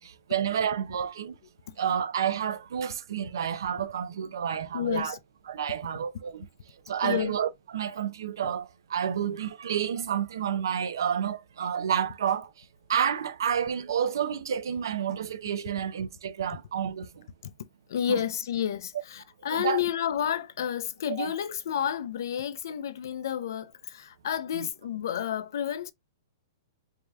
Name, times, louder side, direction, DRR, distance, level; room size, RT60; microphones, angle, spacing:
voice 1, 0.0-1.3 1.8-5.2 5.5-6.5 6.9-12.5 12.9-17.1 18.1-18.2 19.5-19.8 21.2-21.3 24.5-24.7, right 8 dB, 75° right, 0.6 m, -30 dB
voice 2, 4.7-5.2 7.0-7.4 8.4-8.5 17.4-17.5 17.9-25.9, left 9 dB, 60° left, 0.5 m, -30 dB
4.8 x 2.8 x 2.3 m
hypercardioid pair, 170°, 2 cm